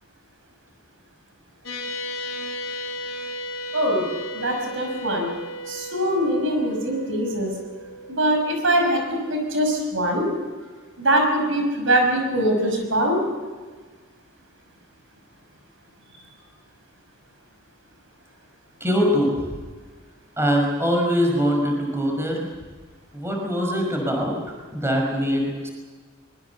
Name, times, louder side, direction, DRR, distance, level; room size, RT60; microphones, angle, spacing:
sound 1, 1.6-10.3, equal, 85° left, 3.7 m, -36 dB
voice 1, 3.7-4.1 4.3-5.3 5.7-7.5 8.1-10.3 11.0-13.2, right 1 dB, 70° right, 3 dB, 6.1 m, -22 dB
voice 2, 18.8-19.5 20.4-22.5 23.1-24.4 24.7-25.7, equal, 15° right, 0 dB, 5.3 m, -22 dB
24.0 x 22.5 x 7.0 m, 1.4 s
head